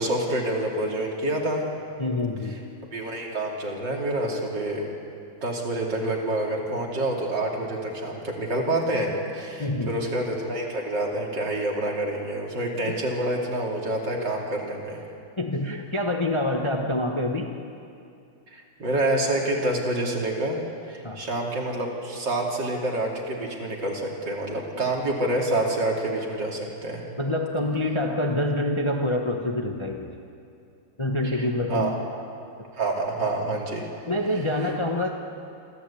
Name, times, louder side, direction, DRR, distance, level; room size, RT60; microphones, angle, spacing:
voice 1, 0.0-1.7 2.9-4.9 5.4-15.0 18.5-20.6 20.9-27.0 31.2-31.9 32.7-33.9, right 1 dB, 60° right, -1 dB, 3.5 m, -27 dB
voice 2, 2.0-2.6 9.6-10.0 12.9-13.0 15.4-17.6 21.0-21.3 27.2-30.2 31.0-32.0 34.1-35.1, left 1 dB, 20° left, 2 dB, 0.9 m, -26 dB
26.5 x 14.0 x 8.5 m, 2.5 s
omnidirectional pair, 2.2 m